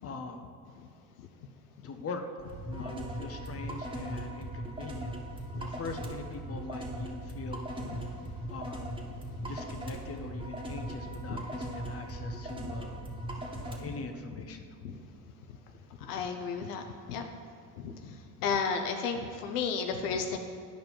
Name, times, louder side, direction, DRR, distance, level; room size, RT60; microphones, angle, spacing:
voice 1, 0.0-0.4 1.8-2.2 2.7-5.1 5.6-7.6 8.5-8.9 9.5-13.0 13.6-14.8, left 3 dB, 30° left, 5 dB, 1.0 m, -42 dB
sound 1, 2.4-13.8, right 1 dB, 10° right, 1.7 m, -39 dB
voice 2, 16.0-16.8 17.1-17.3 17.8-18.1 18.4-20.4, left 5 dB, 85° left, 5 dB, 0.7 m, -32 dB
10.5 x 5.2 x 4.5 m, 2.3 s
hypercardioid pair, 65°, 45 cm